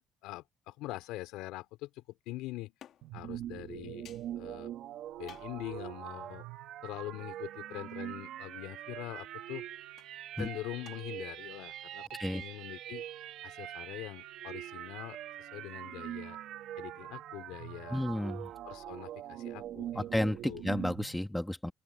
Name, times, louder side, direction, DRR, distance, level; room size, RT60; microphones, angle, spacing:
voice 1, 0.0-2.7 3.1-4.1 4.4-4.7 5.2-6.4 6.8-9.6 10.4-12.1 12.3-13.1 13.4-16.4 16.8-18.1 18.6-20.0 20.4-20.6, left 18 dB, 90° left, 4.7 m, -43 dB
sound 1, 2.8-3.2 4.1-4.3 5.3-5.7 6.6-6.7 7.4-7.5 9.9-10.6 10.9-11.0, left 10 dB, 55° left, 3.1 m, -55 dB
sound 2, 3.0-21.2, right 12 dB, 65° right, 1.8 m, -43 dB
voice 2, 17.9-18.5 20.0-21.7, left 1 dB, 5° left, 2.6 m, -32 dB
open air
cardioid pair, 135°, 0 cm